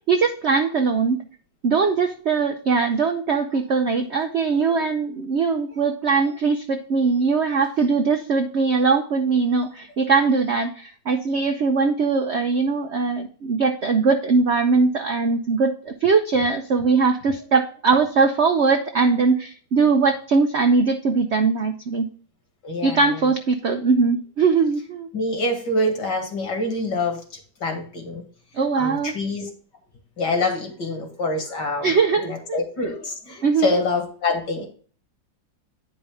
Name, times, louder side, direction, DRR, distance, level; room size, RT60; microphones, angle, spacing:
voice 1, 0.1-1.2 1.6-22.1 22.8-25.1 28.6-29.1 31.8-32.6 33.4-33.8, right 4 dB, 70° right, 5 dB, 0.6 m, -21 dB
voice 2, 22.6-23.3 25.1-28.2 28.8-29.5 30.2-34.7, left 2 dB, 65° left, 3 dB, 2.4 m, -26 dB
9.6 x 5.2 x 3.4 m, 0.43 s
omnidirectional pair, 2.1 m